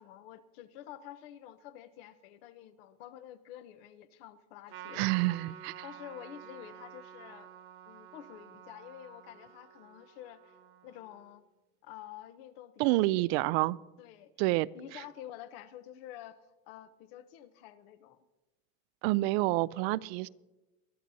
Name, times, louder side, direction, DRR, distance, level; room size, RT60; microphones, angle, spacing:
voice 1, 0.0-5.4 5.8-7.5 7.9-11.4 11.8-13.5 14.0-14.3 14.7-18.2, left 11 dB, 80° left, 13 dB, 0.9 m, -49 dB
Trumpet, 4.7-11.4, right 9 dB, 45° right, 1.1 m, -51 dB
voice 2, 4.9-5.8 12.8-13.8 14.4-14.7 19.0-20.3, right 19 dB, 85° right, 19 dB, 0.5 m, -28 dB
22.0 x 13.0 x 2.8 m, 1.1 s
cardioid pair, 175°, 30 cm